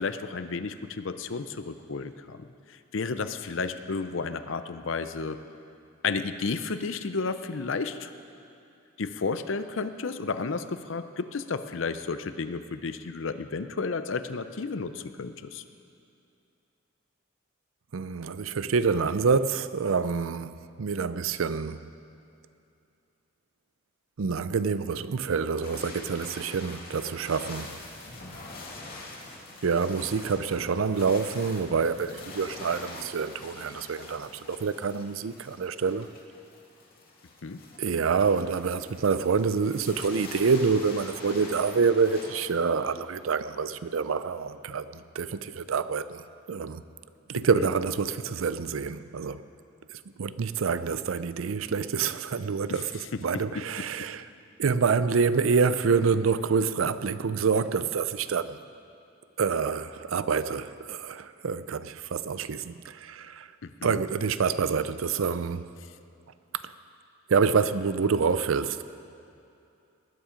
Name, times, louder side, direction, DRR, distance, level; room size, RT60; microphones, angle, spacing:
voice 1, 0.0-5.4 6.0-8.1 9.0-15.6 37.4-37.6 47.5-47.7 53.3-53.6 63.6-64.0, left 4 dB, 70° left, 0.6 m, -32 dB
voice 2, 17.9-21.8 24.2-27.8 29.6-36.1 37.8-46.8 47.3-49.4 49.9-54.3 54.6-58.6 59.4-63.5 63.8-65.7 66.5-66.7 67.3-68.8, right 5 dB, 85° right, 0.5 m, -27 dB
sound 1, 25.6-42.4, left 2 dB, 50° left, 2.2 m, -44 dB
19.0 x 10.0 x 5.1 m
head